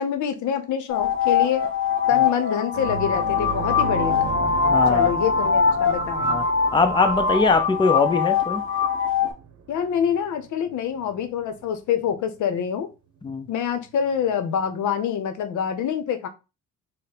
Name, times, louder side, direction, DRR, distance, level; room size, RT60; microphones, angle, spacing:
voice 1, 0.0-1.7 2.1-4.2 4.9-6.4 9.7-12.9 13.5-16.3, left 8 dB, 75° left, 0.7 m, -26 dB
sound 1, 0.9-9.3, left 5 dB, 45° left, 0.8 m, -22 dB
sound 2, 2.7-11.7 12.0-12.2 14.2-14.3, right 5 dB, 50° right, 0.8 m, -36 dB
voice 2, 4.7-5.1 6.2-6.4 6.7-8.6 13.2-13.5, left 4 dB, 15° left, 0.5 m, -21 dB
3.7 x 2.1 x 4.1 m
cardioid pair, 90°, 30 cm